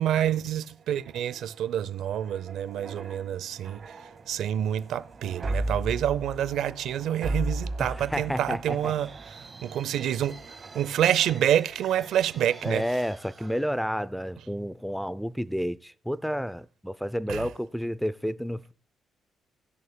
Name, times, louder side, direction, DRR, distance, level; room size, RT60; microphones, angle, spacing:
voice 1, 0.0-12.8 17.3-17.5, right 10 dB, 80° right, 0.5 m, -28 dB
sound 1, 0.7-13.0 13.4-13.6, right 2 dB, 45° right, 1.8 m, -38 dB
voice 2, 7.8-8.9 12.6-18.7, equal, ahead, 0.4 m, -30 dB
sound 2, 8.6-14.4, right 3 dB, 30° right, 1.1 m, -51 dB
19.5 x 6.5 x 2.2 m
cardioid pair, 90°, 0 cm